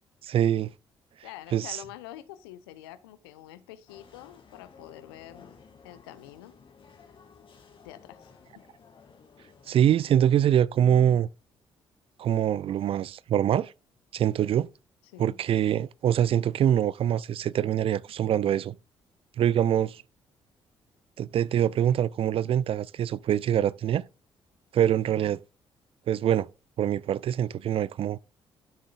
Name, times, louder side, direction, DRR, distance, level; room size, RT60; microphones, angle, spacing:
voice 1, 0.2-0.7 1.5-1.8 9.7-11.3 12.2-13.7 14.1-14.7 15.2-18.7 19.4-20.0 21.2-24.0 24.7-25.4 26.1-26.5 26.8-28.2, right 10 dB, 45° right, 0.4 m, -24 dB
voice 2, 1.2-5.6 5.8-6.5 7.8-8.2 15.1-15.4, left 14 dB, 75° left, 0.7 m, -46 dB
sound 1, 3.9-10.4, left 5 dB, 40° left, 2.1 m, -55 dB
12.5 x 7.5 x 2.4 m
figure-of-eight pair, 40°, 13 cm